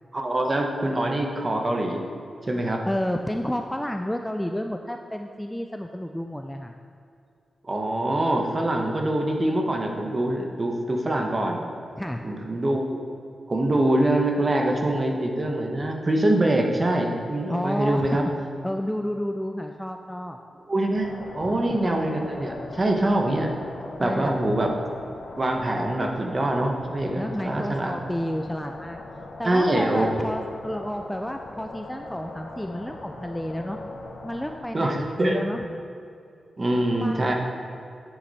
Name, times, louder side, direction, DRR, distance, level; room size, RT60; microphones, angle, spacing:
voice 1, 0.1-2.0 2.4-2.8 7.6-11.7 12.2-13.0 13.5-18.2 20.7-23.6 24.0-24.7 25.4-27.9 29.4-30.3 34.7-35.4 36.6-37.3, right 1 dB, 30° right, 2 dB, 1.1 m, -24 dB
voice 2, 2.9-6.7 12.0-12.3 17.5-18.2 18.6-20.4 21.4-21.8 24.0-24.5 27.2-29.0 29.4-33.8 34.2-35.6 37.0-37.3, equal, 5° left, 4 dB, 0.4 m, -31 dB
sound 1, 20.9-34.6, left 2 dB, 80° left, 1.3 m, -40 dB
9.9 x 8.2 x 4.2 m, 2.5 s
wide cardioid pair, 135°, 0 cm